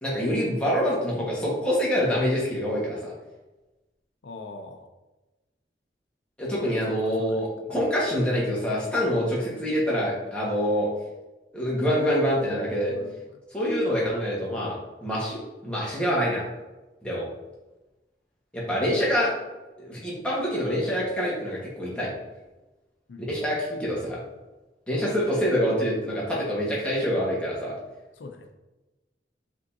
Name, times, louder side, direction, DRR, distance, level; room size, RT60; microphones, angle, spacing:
voice 1, 0.0-3.1 6.4-10.9 11.5-12.9 13.5-14.7 15.0-16.4 17.0-17.2 18.5-19.3 19.8-22.1 23.3-24.2 24.9-27.7, equal, 5° left, -6 dB, 1.3 m, -26 dB
voice 2, 4.2-4.9 6.7-7.3 11.9-12.0 12.9-13.2 23.1-23.2 28.2-28.5, left 3 dB, 90° left, 6 dB, 0.5 m, -41 dB
5.2 x 3.6 x 2.7 m, 1.1 s
head